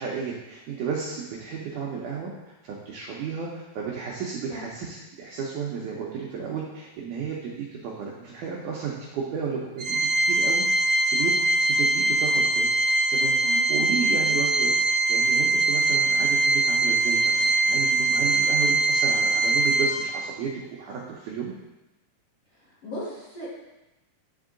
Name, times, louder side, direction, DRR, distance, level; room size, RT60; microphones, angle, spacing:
voice 1, 0.0-2.3 2.6-10.0 10.2-10.6 11.0-12.7 13.1-14.8 15.1-21.5, right 6 dB, 90° right, -3 dB, 1.8 m, -33 dB
Organ, 9.8-20.4, right 2 dB, 70° right, 1.2 m, -22 dB
voice 2, 22.8-23.5, equal, 60° left, -8 dB, 1.7 m, -36 dB
10.5 x 3.6 x 3.7 m, 1.0 s
omnidirectional pair, 4.5 m